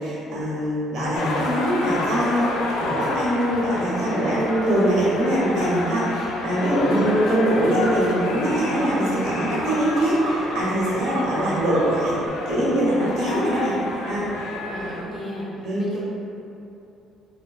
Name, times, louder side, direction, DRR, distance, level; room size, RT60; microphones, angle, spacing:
voice 1, 0.0-2.5 2.8-12.2 12.5-13.7 14.0-14.6 15.6-15.8, right 1 dB, 65° right, -7 dB, 1.1 m, -23 dB
sound 1, 1.1-15.0, left 2 dB, 85° left, 0.4 m, -30 dB
sound 2, 7.2-7.3 7.6-12.3, right 3 dB, 80° right, 0.5 m, -35 dB
voice 2, 14.6-15.5 15.9-16.0, left 1 dB, 20° left, -7 dB, 0.8 m, -33 dB
4.7 x 2.2 x 2.3 m, 2.8 s
cardioid pair, 145°, 0 cm